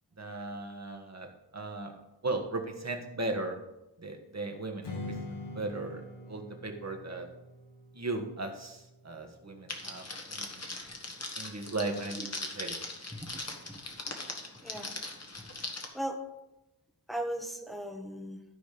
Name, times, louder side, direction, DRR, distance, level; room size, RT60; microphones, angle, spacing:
voice 1, 0.2-3.6 4.0-7.3 7.9-10.8 11.3-12.7, right 2 dB, 40° right, 3 dB, 1.5 m, -37 dB
Strum, 4.8-10.1, left 2 dB, 75° left, 1.4 m, -45 dB
Crackle, 9.7-15.9, left 2 dB, 35° left, 1.6 m, -40 dB
voice 2, 14.6-15.0 15.4-15.5 15.9-16.2 17.1-18.4, right 1 dB, ahead, 5 dB, 1.1 m, -37 dB
13.0 x 5.1 x 5.0 m, 0.95 s
wide cardioid pair, 90°, 42 cm